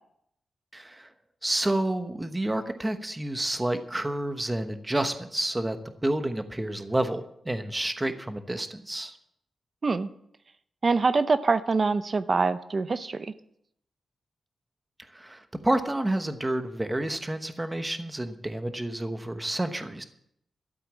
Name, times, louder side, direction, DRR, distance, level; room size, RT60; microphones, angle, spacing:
voice 1, 0.7-1.1 1.4-5.8 6.0-9.2 15.1-20.0, right 1 dB, 15° right, 8 dB, 1.1 m, -29 dB
voice 2, 10.8-13.3, right 4 dB, 35° right, 12 dB, 0.6 m, -24 dB
13.0 x 8.2 x 7.5 m, 0.72 s
wide cardioid pair, 140°, 0 cm